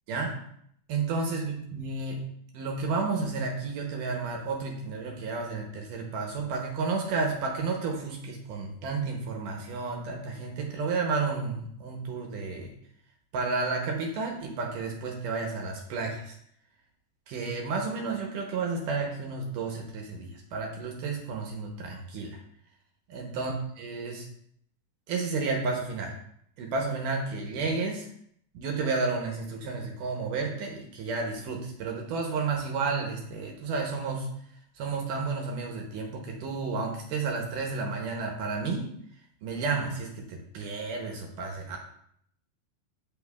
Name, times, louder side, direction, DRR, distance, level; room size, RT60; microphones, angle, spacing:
voice 1, 0.9-2.2 2.5-12.7 13.3-16.4 17.3-22.4 23.1-24.3 25.1-26.1 26.6-28.1 28.5-34.3 34.8-38.9 39.4-41.8, right 4 dB, 75° right, 1 dB, 2.1 m, -31 dB
8.5 x 5.3 x 2.3 m, 0.69 s
omnidirectional pair, 4.3 m